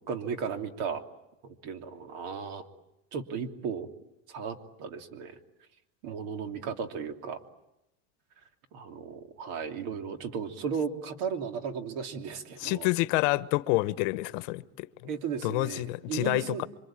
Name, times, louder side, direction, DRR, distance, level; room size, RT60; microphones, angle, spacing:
voice 1, 0.1-1.0 1.4-2.6 3.1-3.9 4.3-5.4 6.0-7.4 8.7-12.9 15.0-16.6, right 6 dB, 70° right, 3.1 m, -35 dB
voice 2, 12.6-14.9 15.4-16.7, left 20 dB, 80° left, 1.1 m, -28 dB
27.0 x 25.0 x 9.0 m
cardioid pair, 155°, 37 cm